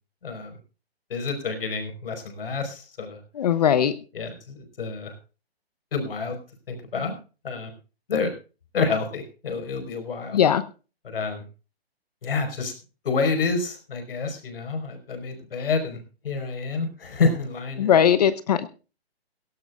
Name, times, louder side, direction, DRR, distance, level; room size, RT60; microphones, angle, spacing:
voice 1, 0.2-0.6 1.1-3.2 4.1-5.1 5.9-6.4 6.7-7.1 7.4-7.7 8.1-8.3 8.7-10.4 11.0-11.4 12.2-12.7 13.0-16.0 16.2-18.0, left 4 dB, 60° left, 7 dB, 4.9 m, -28 dB
voice 2, 3.3-3.9 10.3-10.6 17.8-18.7, left 9 dB, 40° left, 15 dB, 0.9 m, -19 dB
17.5 x 16.0 x 2.5 m, 0.33 s
hypercardioid pair, 160°, 32 cm